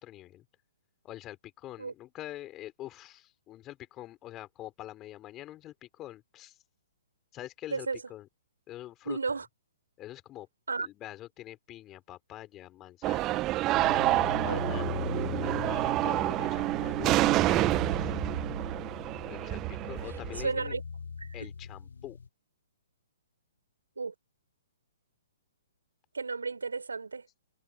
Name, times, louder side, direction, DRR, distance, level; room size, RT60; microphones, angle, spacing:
voice 1, 0.0-0.4 1.0-6.6 7.3-8.3 8.7-9.2 10.0-10.5 10.8-13.4 13.8-18.2 19.3-20.8 21.3-22.2, left 14 dB, 25° left, 5.0 m, -45 dB
voice 2, 9.0-9.4 10.7-10.9 14.5-14.6 20.4-20.8 21.2-21.5 24.0-24.1 26.1-27.2, right 4 dB, 75° right, 5.1 m, -33 dB
sound 1, 13.0-20.5, right 17 dB, 25° right, 1.4 m, -28 dB
sound 2, 13.8-22.3, left 5 dB, 65° left, 1.1 m, -39 dB
figure-of-eight pair, 120°, 0 cm